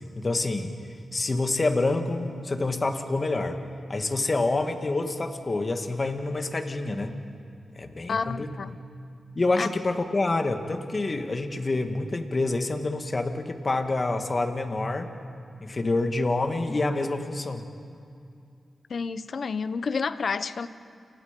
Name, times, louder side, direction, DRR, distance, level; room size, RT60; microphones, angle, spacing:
voice 1, 0.2-0.8 1.1-3.6 3.9-7.2 7.8-8.6 9.4-15.1 15.6-17.7, left 2 dB, 40° left, 6 dB, 2.1 m, -27 dB
voice 2, 8.1-8.8 9.6-9.7 18.9-20.7, left 5 dB, 65° left, 13 dB, 0.9 m, -29 dB
29.0 x 28.5 x 5.4 m, 2.5 s
cardioid pair, 70°, 0 cm